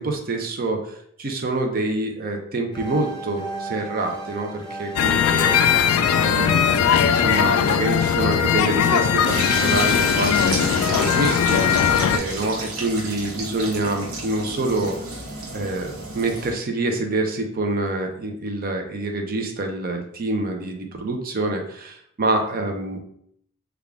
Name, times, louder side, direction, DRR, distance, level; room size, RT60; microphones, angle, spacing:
voice 1, 0.0-5.6 6.1-6.8 7.1-11.6 12.1-15.0 15.5-23.0, right 2 dB, 45° right, 4 dB, 0.5 m, -26 dB
sound 1, 2.7-8.5, equal, 20° left, 0.7 m, -34 dB
sound 2, 5.0-12.2, left 8 dB, 85° left, 0.3 m, -19 dB
sound 3, 9.3-16.5, right 2 dB, 85° right, 0.8 m, -31 dB
3.5 x 2.3 x 3.5 m, 0.68 s
head